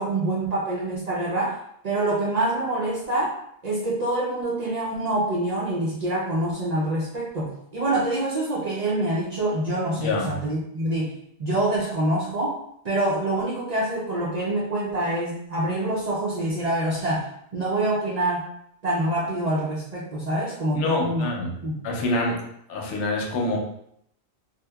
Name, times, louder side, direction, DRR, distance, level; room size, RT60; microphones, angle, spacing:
voice 1, 0.0-1.6 1.8-3.4 3.6-11.1 11.4-12.6 12.8-18.5 18.8-21.3 21.6-21.8, right 1 dB, 55° right, -6 dB, 0.4 m, -26 dB
voice 2, 10.0-10.3 20.7-21.5 21.8-22.4 22.7-23.6, left 2 dB, 85° left, 0 dB, 0.9 m, -26 dB
2.8 x 2.1 x 2.2 m, 0.72 s
omnidirectional pair, 1.2 m